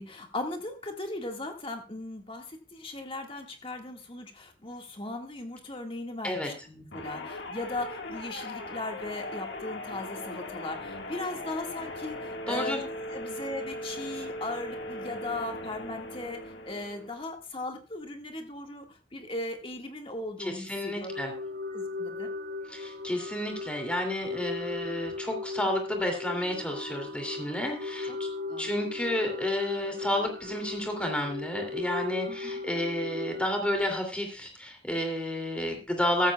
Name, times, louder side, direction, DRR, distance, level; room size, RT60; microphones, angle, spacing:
voice 1, 0.0-12.8 13.1-21.1 21.7-22.3 28.1-28.2 28.5-28.7 32.3-32.5, left 2 dB, 30° left, 3 dB, 1.8 m, -38 dB
sound 1, 6.9-17.3, left 1 dB, 60° left, 1.7 m, -39 dB
voice 2, 12.5-12.8 20.4-21.3 22.7-28.3 28.6-36.3, left 1 dB, 5° left, 3 dB, 2.7 m, -31 dB
sound 2, 21.1-33.5, left 3 dB, 55° right, 1.0 m, -37 dB
14.0 x 14.0 x 2.3 m, 0.34 s
head